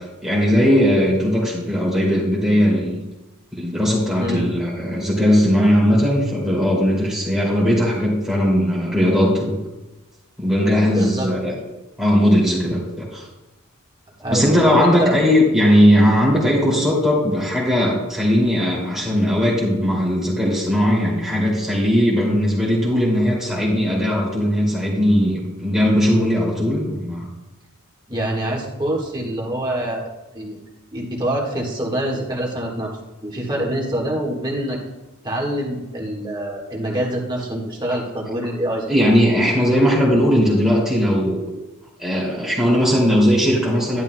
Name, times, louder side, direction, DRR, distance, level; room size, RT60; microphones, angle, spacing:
voice 1, 0.0-3.0 3.5-9.6 10.4-11.5 12.0-13.3 14.3-27.2 38.9-41.4 42.0-44.0, equal, ahead, -5 dB, 2.4 m, -18 dB
voice 2, 10.8-11.3 14.2-15.1 28.1-30.6 30.9-32.9 33.2-34.8 35.2-38.9, right 1 dB, 20° right, -2 dB, 1.6 m, -25 dB
11.0 x 10.5 x 2.2 m, 1.0 s
head